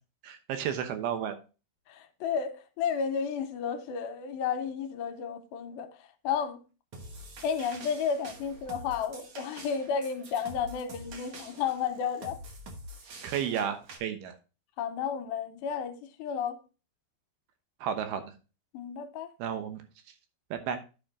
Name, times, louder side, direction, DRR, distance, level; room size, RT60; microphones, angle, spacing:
voice 1, 0.2-1.4 13.2-14.3 17.8-18.2 19.4-19.8 20.5-20.8, right 8 dB, 85° right, 3.0 m, -32 dB
voice 2, 1.9-5.9 6.2-6.6 7.4-12.4 14.8-16.6 18.7-19.3, left 7 dB, 85° left, 2.5 m, -32 dB
sound 1, 6.9-14.0, right 1 dB, 70° right, 1.2 m, -46 dB
10.0 x 5.2 x 3.7 m
omnidirectional pair, 4.4 m